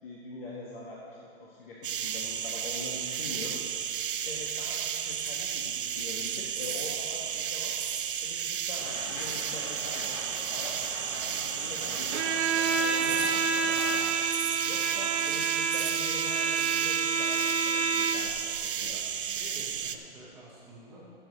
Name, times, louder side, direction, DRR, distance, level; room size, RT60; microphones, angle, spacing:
voice 1, 0.0-3.6 4.2-7.7 8.2-10.2 10.5-12.2 12.8-14.3 14.6-19.0, left 2 dB, 55° left, -4 dB, 1.7 m, -43 dB
sound 1, 1.8-20.0, right 8 dB, 50° right, 0.6 m, -33 dB
sound 2, 8.7-14.1, left 2 dB, 25° left, 1.1 m, -42 dB
Bowed string instrument, 12.1-18.4, right 5 dB, 85° right, 0.8 m, -28 dB
voice 2, 18.8-21.1, right 1 dB, ahead, -15 dB, 0.7 m, -49 dB
13.5 x 7.4 x 5.3 m, 2.6 s
hypercardioid pair, 180°, 33 cm